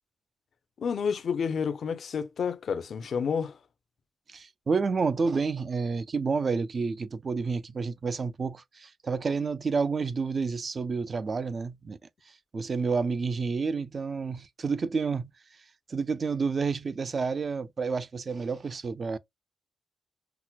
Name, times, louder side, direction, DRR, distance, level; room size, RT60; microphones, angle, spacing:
voice 1, 0.8-3.6, left 6 dB, 55° left, 0.5 m, -30 dB
voice 2, 4.3-12.0 12.5-15.3 15.9-19.2, right 4 dB, 35° right, 0.3 m, -29 dB
5.8 x 2.0 x 2.2 m
wide cardioid pair, 165°, 0 cm